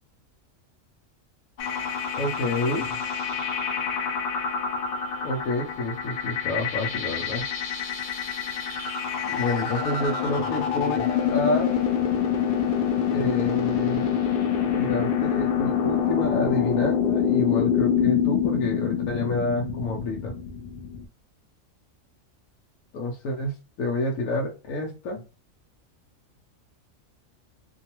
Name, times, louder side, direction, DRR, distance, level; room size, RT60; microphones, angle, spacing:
sound 1, 1.6-21.1, left 8 dB, 65° left, 0.6 m, -26 dB
voice 1, 2.1-3.0 5.2-7.5 9.2-11.8 13.1-14.1 14.7-20.3 22.9-25.2, left 2 dB, 80° left, 0 dB, 1.0 m, -28 dB
2.6 x 2.3 x 2.8 m, 0.32 s
omnidirectional pair, 1.4 m